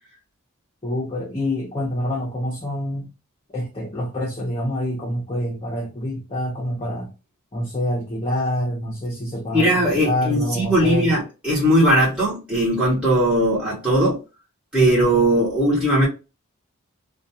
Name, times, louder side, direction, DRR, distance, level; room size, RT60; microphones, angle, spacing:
voice 1, 0.8-3.1 3.5-7.1 7.5-11.2, left 1 dB, 25° left, 0.6 m, -26 dB
voice 2, 9.5-14.2 14.7-16.1, right 1 dB, 5° right, 0.9 m, -19 dB
2.2 x 2.2 x 2.7 m
head